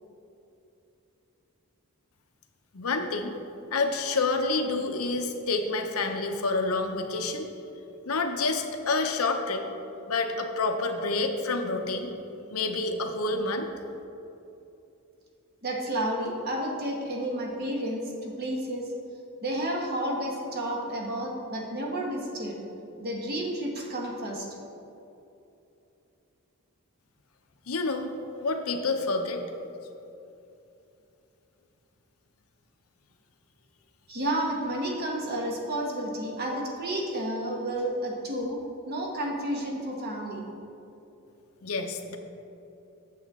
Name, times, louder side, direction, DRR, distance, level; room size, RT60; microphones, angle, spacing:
voice 1, 2.7-3.4 3.7-7.5 8.1-9.6 10.1-12.1 12.5-13.7 27.7-28.1 28.4-29.4 41.6-42.2, left 3 dB, 80° left, 5 dB, 0.8 m, -28 dB
voice 2, 15.6-18.9 19.4-22.6 23.0-24.5 34.1-38.6 38.8-40.4, right 1 dB, 50° right, -1 dB, 1.3 m, -31 dB
8.3 x 7.7 x 3.6 m, 2.8 s
head